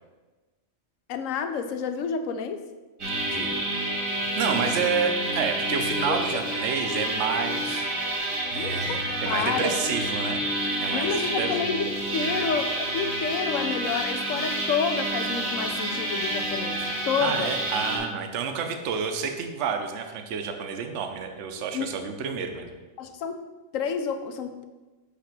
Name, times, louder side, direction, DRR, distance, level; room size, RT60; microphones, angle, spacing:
voice 1, 1.1-2.6 4.5-4.7 6.1-6.2 8.5-9.8 10.9-11.9 12.1-17.6 21.7-21.9 23.0-23.4 23.7-24.6, left 6 dB, 75° left, 8 dB, 1.0 m, -29 dB
sound 1, 3.0-18.0, right 1 dB, 80° right, 2.2 m, -29 dB
voice 2, 4.4-10.5 10.8-11.6 17.2-22.8, right 6 dB, 65° right, 5 dB, 0.9 m, -29 dB
8.3 x 3.0 x 5.9 m, 1.2 s
omnidirectional pair, 1.4 m